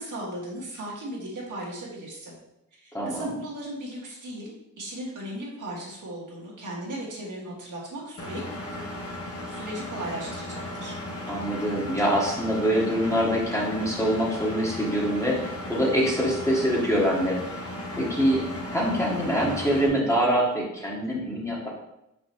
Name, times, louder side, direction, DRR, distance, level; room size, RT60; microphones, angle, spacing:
voice 1, 0.0-2.3 2.7-8.8 9.5-11.0, right 1 dB, 80° right, -4 dB, 1.9 m, -37 dB
voice 2, 2.9-3.3 11.3-17.4 18.0-18.4 18.7-21.7, equal, 10° left, -4 dB, 1.3 m, -24 dB
Engine, 8.2-19.9, left 1 dB, 50° left, 0.9 m, -36 dB
5.9 x 5.3 x 3.0 m, 0.86 s
wide cardioid pair, 160°, 31 cm